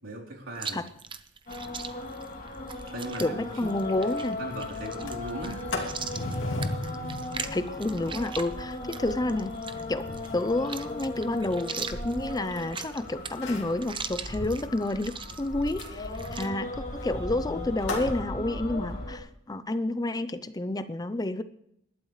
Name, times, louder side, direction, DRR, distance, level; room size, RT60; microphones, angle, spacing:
voice 1, 0.0-0.8 2.9-3.7 4.0-4.1 4.4-6.2 8.8-9.1 16.4-16.6, right 1 dB, 80° right, -3 dB, 4.0 m, -39 dB
Chewing mastication, 0.5-16.5, right 6 dB, 25° right, 0.8 m, -41 dB
sound 1, 1.5-19.2, left 2 dB, 50° left, 2.8 m, -37 dB
voice 2, 3.2-4.4 7.5-9.5 9.9-10.1 10.3-21.4, left 2 dB, 20° left, 12 dB, 0.6 m, -30 dB
Sliding door, 3.3-3.4 3.8-3.9 4.2-4.5 4.9-12.9 13.3-13.8 15.8-18.2, left 2 dB, 75° left, 2.7 m, -38 dB
26.5 x 12.0 x 3.3 m, 0.75 s
head